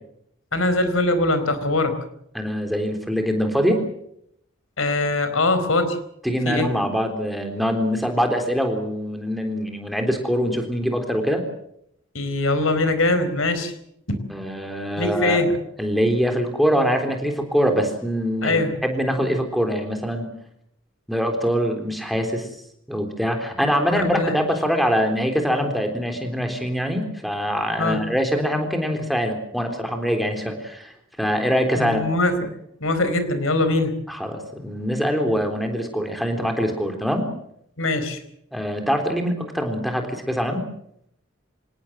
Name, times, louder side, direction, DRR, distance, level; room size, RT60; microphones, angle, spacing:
voice 1, 0.5-2.0 4.8-6.0 6.5-6.7 12.1-13.7 15.0-15.5 18.4-18.8 23.9-24.4 27.8-28.0 31.8-32.4 32.8-33.9 37.8-38.2, left 2 dB, 90° left, 11 dB, 4.3 m, -22 dB
voice 2, 2.3-3.8 6.2-11.4 14.3-15.4 15.8-20.3 21.1-22.5 22.9-32.0 34.1-37.3 38.5-40.6, equal, ahead, 4 dB, 3.6 m, -23 dB
27.0 x 18.5 x 7.6 m, 0.73 s
head